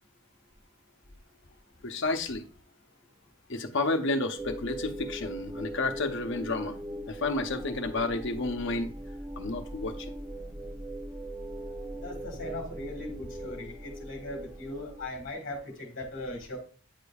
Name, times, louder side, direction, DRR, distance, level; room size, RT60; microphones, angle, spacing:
voice 1, 1.8-2.4 3.5-6.8 7.1-8.9 9.4-10.1, left 2 dB, 60° left, 0.8 m, -31 dB
sound 1, 4.4-15.1, right 1 dB, 15° right, 0.4 m, -40 dB
voice 2, 12.0-16.6, left 1 dB, 45° left, 1.4 m, -39 dB
8.8 x 5.1 x 2.3 m
head